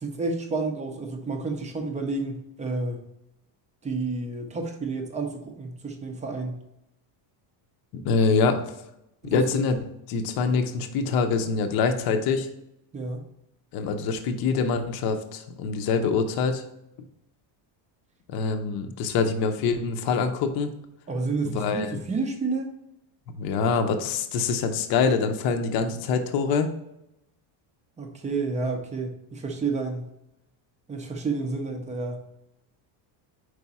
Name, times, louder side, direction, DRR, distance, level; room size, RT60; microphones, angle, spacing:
voice 1, 0.0-3.0 3.8-6.6 9.2-9.4 12.9-13.2 21.1-22.7 28.0-30.1 30.9-32.2, right 3 dB, 15° right, 4 dB, 0.5 m, -30 dB
voice 2, 7.9-8.7 9.2-9.8 10.1-12.5 13.7-16.6 18.3-20.7 21.5-22.0 23.4-26.7, left 5 dB, 50° left, 6 dB, 0.7 m, -25 dB
4.9 x 4.7 x 4.1 m, 0.84 s
cardioid pair, 175°, 49 cm